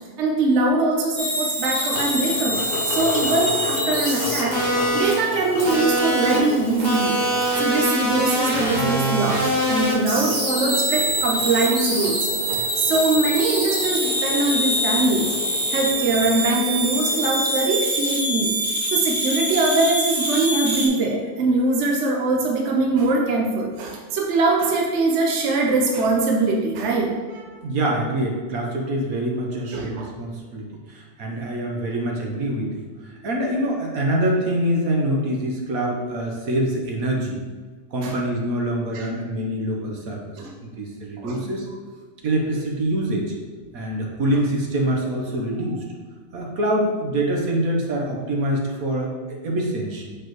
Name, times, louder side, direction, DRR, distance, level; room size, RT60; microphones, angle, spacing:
voice 1, 0.2-7.2 7.6-15.3 15.7-18.5 18.9-27.5 29.7-30.1 38.0-38.1 38.9-39.1 40.4-40.5 41.2-41.4, right 3 dB, 55° right, 0 dB, 1.0 m, -22 dB
sound 1, 1.2-20.9, right 1 dB, 35° right, 1.1 m, -24 dB
sound 2, 1.9-18.0, left 4 dB, 55° left, 0.6 m, -33 dB
voice 2, 27.6-37.4 37.9-40.4 40.8-41.7 42.2-43.3 43.7-45.8 46.3-50.2, right 1 dB, 75° right, -1 dB, 1.5 m, -25 dB
6.7 x 5.0 x 3.1 m, 1.4 s
omnidirectional pair, 1.5 m